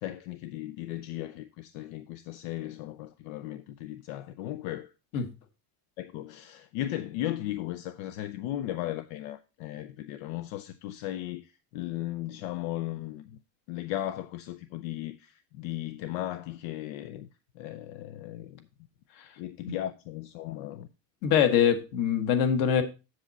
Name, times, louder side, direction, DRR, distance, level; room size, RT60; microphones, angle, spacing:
voice 1, 0.0-4.9 6.0-13.4 13.7-17.3 17.6-18.7 19.4-20.9, left 14 dB, 75° left, 0.7 m, -36 dB
voice 2, 21.2-22.8, left 8 dB, 55° left, 1.5 m, -23 dB
7.7 x 7.5 x 4.1 m
cardioid pair, 165°, 41 cm